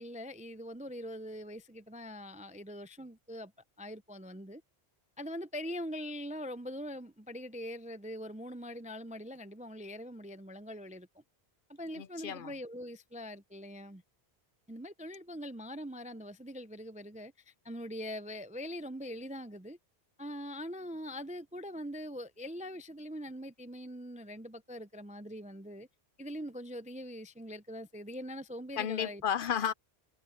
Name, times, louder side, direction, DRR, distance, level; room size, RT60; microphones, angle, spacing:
voice 1, 0.0-3.5 3.8-4.6 5.2-11.1 11.7-14.0 14.7-19.8 20.2-25.9 26.2-29.2, equal, 10° right, 0.3 m, -42 dB
voice 2, 12.0-12.5 28.8-29.7, left 8 dB, 65° left, 0.7 m, -32 dB
omnidirectional pair, 1.1 m